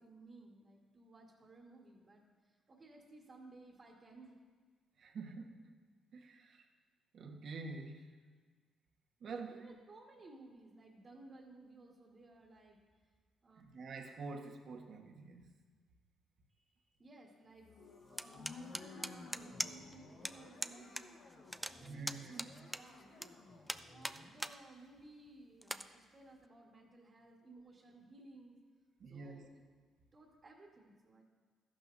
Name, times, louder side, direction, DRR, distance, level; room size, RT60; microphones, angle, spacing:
voice 1, 0.0-4.4 9.5-12.8 13.4-13.6 16.5-17.7 18.1-21.2 21.5-22.2 22.7-28.6 29.1-29.6 30.1-31.2, right 2 dB, 35° right, -4 dB, 1.8 m, -58 dB
voice 2, 5.0-5.7 6.1-6.6 7.1-8.1 9.2-9.7 13.6-15.5 21.8-22.7 29.0-29.5, right 3 dB, 60° right, 2 dB, 1.4 m, -47 dB
sound 1, 17.5-24.4, left 3 dB, 65° left, 1.7 m, -55 dB
sound 2, 18.2-19.9 20.2-20.3 20.6-21.0 21.3-23.3 23.7-24.6 25.0-25.1 25.6-25.8, equal, ahead, 0.4 m, -40 dB
14.0 x 11.5 x 2.7 m, 1.5 s
cardioid pair, 90°, 0 cm